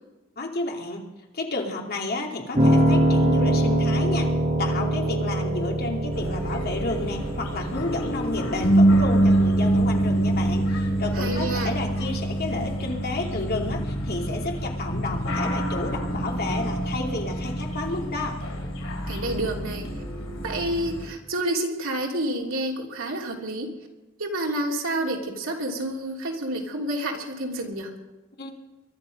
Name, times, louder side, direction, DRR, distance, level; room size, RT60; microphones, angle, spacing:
voice 1, 0.4-1.0 1.3-4.3 4.6-18.4 28.4-28.5, left 2 dB, 50° left, 1 dB, 2.7 m, -31 dB
Piano, 2.5-12.7, right 1 dB, 35° right, 5.1 m, -25 dB
sound 1, 6.1-21.1, right 1 dB, 90° left, 4.3 m, -26 dB
voice 2, 11.1-11.7 19.1-19.9 20.4-23.7 24.2-27.9, right 1 dB, 80° right, 0 dB, 3.3 m, -29 dB
23.0 x 11.5 x 5.3 m, 1.1 s
head